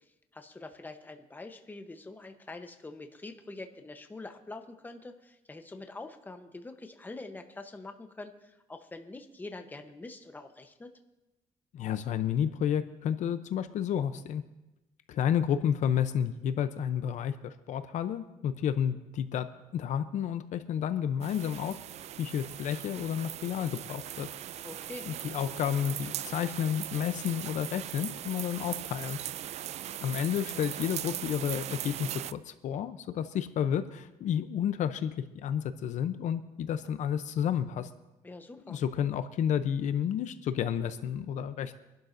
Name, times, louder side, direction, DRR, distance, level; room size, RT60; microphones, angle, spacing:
voice 1, 0.3-10.9 24.6-25.1 38.2-38.8, left 2 dB, 15° left, 6 dB, 1.0 m, -45 dB
voice 2, 11.7-14.4 15.1-19.5 19.7-21.7 22.2-24.3 25.0-29.2 30.0-37.9 38.7-41.8, left 9 dB, 65° left, 11 dB, 0.7 m, -31 dB
sound 1, 21.2-32.3, right 11 dB, 55° right, 0.4 m, -39 dB
25.0 x 11.5 x 2.7 m, 0.98 s
cardioid pair, 125°, 13 cm